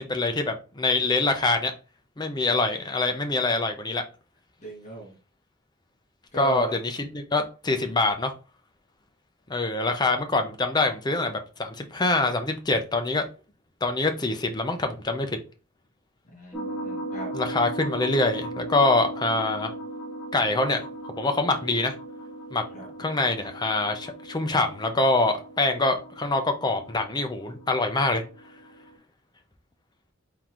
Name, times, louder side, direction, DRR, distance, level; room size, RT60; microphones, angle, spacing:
voice 1, 0.0-1.7 2.2-4.0 6.4-8.3 9.5-13.3 13.8-15.4 17.3-19.7 20.3-20.8 21.2-21.9 22.5-22.6 23.0-28.2, left 2 dB, 20° left, 0.6 m, -25 dB
voice 2, 4.6-5.1 6.3-6.8 16.3-17.3 22.7-22.9, right 3 dB, 35° left, 1.3 m, -35 dB
sound 1, 16.5-28.9, right 1 dB, 5° left, 0.9 m, -38 dB
3.7 x 3.7 x 3.0 m
head